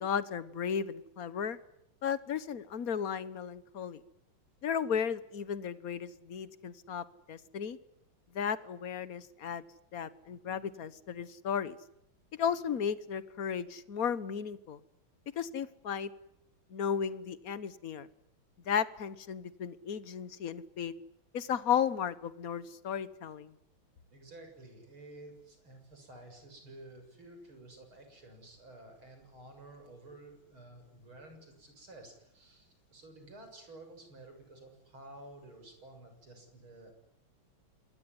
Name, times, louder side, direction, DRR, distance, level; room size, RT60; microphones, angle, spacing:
voice 1, 0.0-1.6 2.0-4.0 4.6-7.8 8.3-9.6 9.9-11.8 12.4-14.8 15.3-16.1 16.7-18.1 18.7-20.9 21.3-23.5, left 7 dB, 45° left, 14 dB, 1.5 m, -34 dB
voice 2, 24.1-36.9, right 2 dB, 70° right, 5 dB, 7.8 m, -52 dB
27.0 x 20.5 x 9.8 m, 0.78 s
omnidirectional pair, 2.4 m